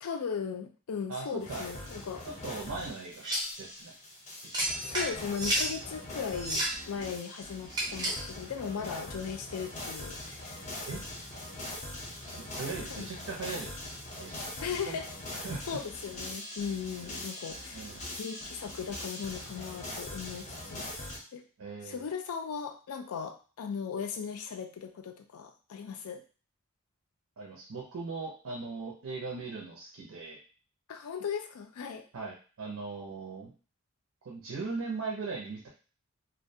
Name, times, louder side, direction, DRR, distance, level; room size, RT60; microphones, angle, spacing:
voice 1, 0.0-2.3 4.8-10.6 12.9-13.1 14.6-15.1 15.4-17.8 18.2-21.0 21.3-21.4 21.8-26.2 30.9-32.0, left 6 dB, 85° left, 6 dB, 0.4 m, -37 dB
voice 2, 1.1-1.6 2.4-3.2 3.6-3.9 4.5-5.0 10.9-11.0 12.2-15.0 15.4-15.8 17.7-18.0 21.6-22.0 27.4-30.4 32.1-33.5 34.2-35.7, right 4 dB, 75° right, -2 dB, 0.5 m, -39 dB
sound 1, 1.4-21.2, left 1 dB, 30° left, 0.5 m, -42 dB
sound 2, 3.2-3.6 4.5-5.7 6.3-6.8 7.7-8.3, right 1 dB, 20° right, 0.4 m, -31 dB
2.4 x 2.1 x 2.6 m, 0.37 s
head